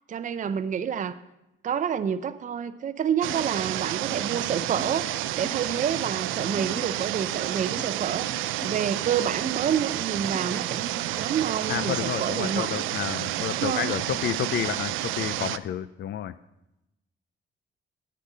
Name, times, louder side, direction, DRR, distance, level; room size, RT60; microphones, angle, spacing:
voice 1, 0.1-1.2 1.6-5.1 5.4-12.8 13.4-13.9, right 8 dB, 40° right, 12 dB, 0.5 m, -28 dB
sound 1, 3.2-15.6, right 14 dB, 90° right, 0.4 m, -30 dB
sound 2, 3.3-3.5 4.1-4.2 4.8-4.9 5.4-5.7 6.6-6.8 7.8-7.9 8.6-8.8 9.4-9.6 10.3-10.5, left 2 dB, 10° right, 1.4 m, -40 dB
voice 2, 11.7-16.3, left 10 dB, 60° left, 13 dB, 0.4 m, -30 dB
9.9 x 8.5 x 5.4 m, 0.90 s
cardioid pair, 90°, 20 cm